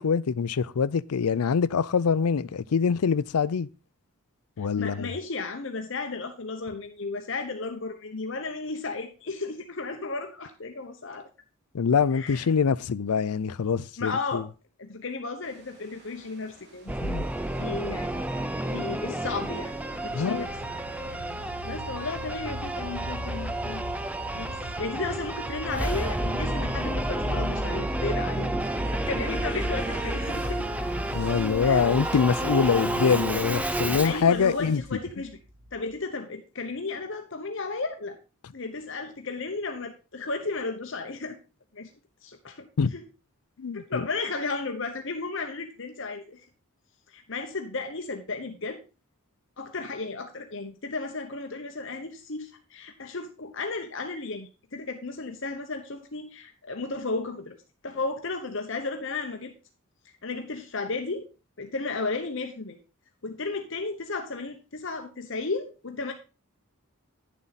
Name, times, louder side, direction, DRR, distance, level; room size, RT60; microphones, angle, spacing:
voice 1, 0.0-3.7 4.6-5.1 11.7-14.4 17.0-17.2 20.1-20.5 31.1-34.8 42.8-42.9 43.6-44.0, left 6 dB, 90° left, 0.5 m, -24 dB
voice 2, 4.6-11.3 12.1-12.5 14.0-14.4 14.8-17.1 17.6-18.5 18.7-19.7 20.0-20.5 21.6-24.1 24.3-30.7 31.6-31.8 34.0-35.4 35.7-38.2 38.5-41.4 41.7-41.9 42.2-43.0 43.7-46.4 47.1-48.8 49.6-57.6 57.8-59.5 60.2-61.3 61.6-62.8 63.2-66.1, left 3 dB, 60° left, 1.0 m, -34 dB
sound 1, 15.4-34.8, right 1 dB, 50° right, 2.4 m, -48 dB
Singing / Musical instrument, 16.9-34.2, right 1 dB, 5° right, 0.5 m, -31 dB
sound 2, 19.5-36.0, equal, 75° right, 2.2 m, -38 dB
10.5 x 7.3 x 4.1 m
head